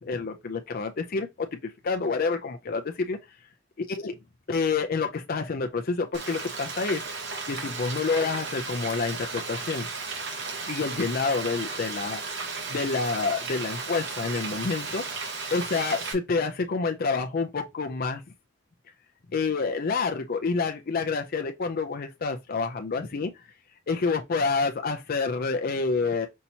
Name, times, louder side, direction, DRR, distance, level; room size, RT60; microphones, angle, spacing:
voice 1, 0.0-3.2 3.9-4.1 4.5-7.0 7.5-9.9 10.7-12.2 12.7-15.0 15.5-18.2 19.3-23.3 23.9-26.3, left 4 dB, 50° left, 0.5 m, -28 dB
Frying (food), 6.1-16.1, right 4 dB, 65° right, 1.2 m, -34 dB
5.5 x 2.9 x 2.7 m
head